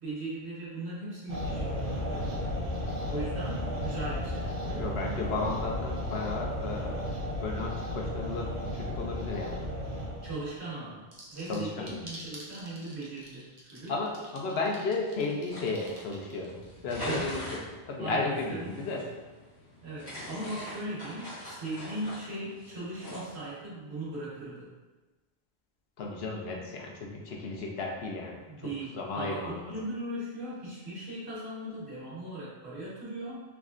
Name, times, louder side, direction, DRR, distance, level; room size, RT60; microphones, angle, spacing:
voice 1, 0.0-1.7 2.0-2.4 3.1-4.9 10.2-11.0 11.3-13.9 17.1-17.3 18.0-18.7 19.8-24.7 28.5-33.4, right 1 dB, 80° right, -7 dB, 1.5 m, -38 dB
sound 1, 1.3-10.5, equal, 55° right, 0.9 m, -34 dB
voice 2, 4.8-7.0 7.4-9.6 11.5-12.0 13.9-16.6 16.8-17.4 17.9-19.0 26.0-29.7, left 3 dB, 75° left, 0 dB, 0.9 m, -34 dB
sound 2, 11.1-16.7, right 1 dB, 35° right, 0.5 m, -48 dB
sound 3, 15.4-23.6, equal, 45° left, 1.5 m, -43 dB
3.5 x 3.1 x 2.5 m, 1.2 s
omnidirectional pair, 1.1 m